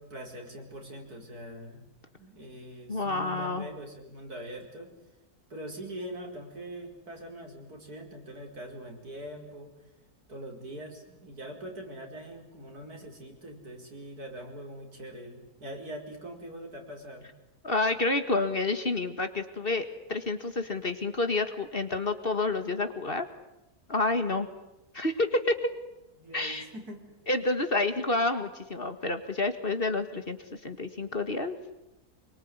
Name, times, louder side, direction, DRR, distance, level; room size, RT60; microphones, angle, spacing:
voice 1, 0.0-1.8 2.2-4.9 5.5-9.7 10.3-17.3 26.2-27.0, right 1 dB, 80° right, 2 dB, 5.4 m, -43 dB
voice 2, 2.9-3.7 17.6-23.3 23.9-24.5 24.9-25.7 26.3-26.7 27.3-30.4 30.6-31.6, left 2 dB, 35° left, 9 dB, 1.9 m, -29 dB
26.0 x 23.5 x 9.6 m, 0.93 s
omnidirectional pair, 1.6 m